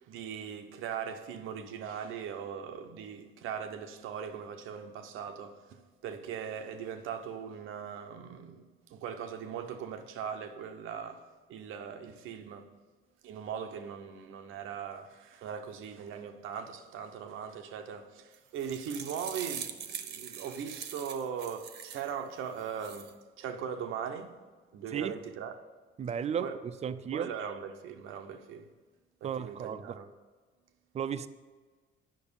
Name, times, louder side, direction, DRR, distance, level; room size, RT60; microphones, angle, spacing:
voice 1, 0.1-12.7 13.2-24.3 24.7-25.5 26.4-26.6 26.9-28.7 29.2-30.1, right 7 dB, 90° right, 1.0 m, -40 dB
sound 1, 18.3-22.1 22.6-23.1, right 8 dB, 60° right, 0.9 m, -42 dB
voice 2, 26.0-27.3 29.2-30.0 30.9-31.3, right 8 dB, 35° right, 0.5 m, -34 dB
10.5 x 6.0 x 7.0 m
cardioid pair, 140°, 20 cm